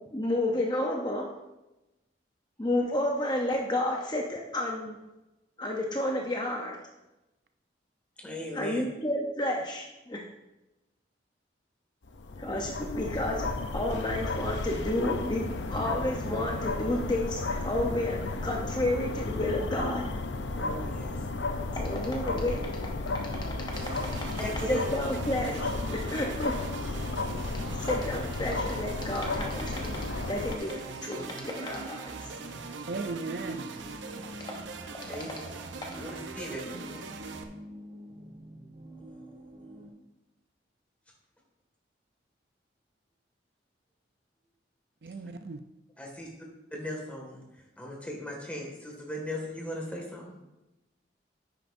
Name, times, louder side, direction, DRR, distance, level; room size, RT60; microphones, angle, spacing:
voice 1, 0.1-1.3 2.6-5.0 5.6-6.8 8.5-10.2 12.4-20.1 21.7-22.8 24.7-26.5 27.8-30.0 30.3-32.1 35.8-36.1 36.6-37.0, left 1 dB, 25° left, 0 dB, 0.7 m, -31 dB
voice 2, 8.2-8.8 20.6-21.3 24.4-24.8 35.0-35.3 36.0-36.6 39.0-39.8 46.0-46.3 46.7-50.3, equal, 10° left, -1 dB, 2.0 m, -38 dB
sound 1, 12.0-30.6, left 3 dB, 75° left, 0.6 m, -33 dB
sound 2, 23.7-37.4, right 4 dB, 85° right, 0.8 m, -42 dB
sound 3, 31.6-39.9, right 1 dB, 35° right, 1.2 m, -47 dB
voice 3, 32.9-33.6 45.0-45.6, right 3 dB, 55° right, 7 dB, 0.5 m, -36 dB
10.0 x 9.1 x 2.6 m, 0.97 s
head